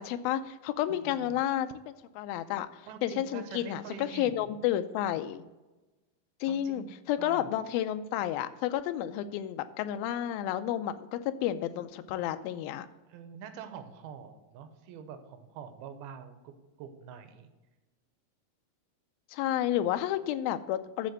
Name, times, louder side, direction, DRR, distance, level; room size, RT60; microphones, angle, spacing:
voice 1, 0.0-5.4 6.4-12.9 19.3-21.1, left 11 dB, 80° left, 10 dB, 2.3 m, -31 dB
voice 2, 0.9-1.3 2.9-4.6 6.5-6.9 7.2-7.5 13.1-16.5 16.8-17.5, right 8 dB, 90° right, 8 dB, 2.7 m, -45 dB
12.5 x 4.3 x 6.3 m, 1.1 s
omnidirectional pair, 4.4 m